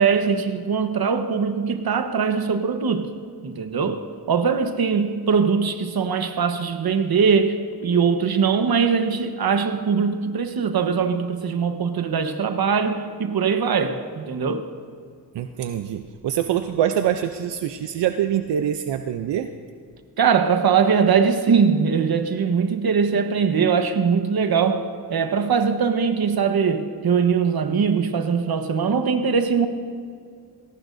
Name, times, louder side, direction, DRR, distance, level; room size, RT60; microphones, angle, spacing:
voice 1, 0.0-3.1 3.4-14.7 20.2-29.7, right 6 dB, 65° right, 1.2 m, -21 dB
voice 2, 15.3-19.5, right 10 dB, 85° right, 0.6 m, -24 dB
21.5 x 18.0 x 2.7 m
cardioid pair, 85°, 41 cm